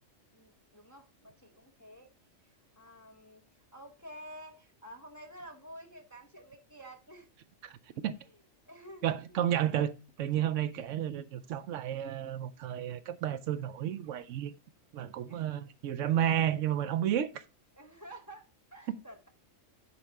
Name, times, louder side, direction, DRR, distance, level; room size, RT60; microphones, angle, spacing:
voice 1, 0.3-2.1 2.8-3.4 3.7-7.3 8.7-9.6 15.3-15.6 17.1-17.2 17.8-19.3, right 1 dB, 15° left, 0.7 m, -50 dB
voice 2, 9.0-9.9 10.2-14.5 14.9-17.3, right 10 dB, 75° right, 0.9 m, -31 dB
10.0 x 4.2 x 3.4 m
omnidirectional pair, 1.3 m